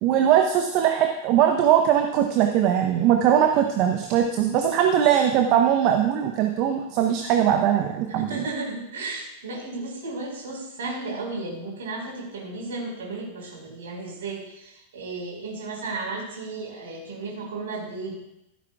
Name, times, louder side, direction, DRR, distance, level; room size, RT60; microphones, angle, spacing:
voice 1, 0.0-8.4, right 9 dB, 40° right, 4 dB, 0.9 m, -21 dB
voice 2, 8.1-18.2, right 3 dB, 60° right, -2 dB, 4.9 m, -34 dB
16.0 x 13.0 x 2.4 m, 0.87 s
figure-of-eight pair, 90°, 0 cm